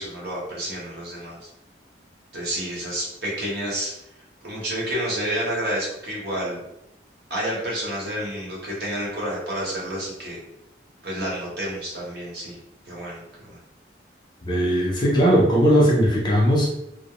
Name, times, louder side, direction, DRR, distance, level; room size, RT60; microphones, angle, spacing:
voice 1, 0.0-1.5 2.3-3.9 4.4-6.6 7.3-10.4 11.0-12.6 12.8-13.2 13.4-13.6, right 1 dB, 60° right, -4 dB, 1.0 m, -29 dB
voice 2, 14.4-16.7, equal, 25° left, -3 dB, 0.5 m, -18 dB
2.3 x 2.0 x 2.9 m, 0.84 s
head